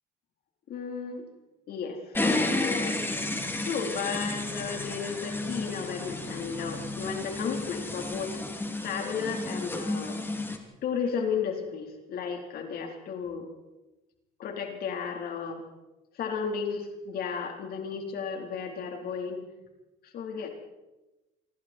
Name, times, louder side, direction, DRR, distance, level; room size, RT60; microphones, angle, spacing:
voice 1, 0.7-1.3 1.7-3.0 3.6-8.4 8.8-10.2 10.8-13.5 14.4-15.6 16.1-19.4 20.0-20.5, left 6 dB, 65° left, 2 dB, 4.3 m, -34 dB
sound 1, 2.1-10.6, left 2 dB, 15° left, 3.2 m, -32 dB
27.5 x 23.5 x 4.6 m, 1.0 s
cardioid pair, 110°, 17 cm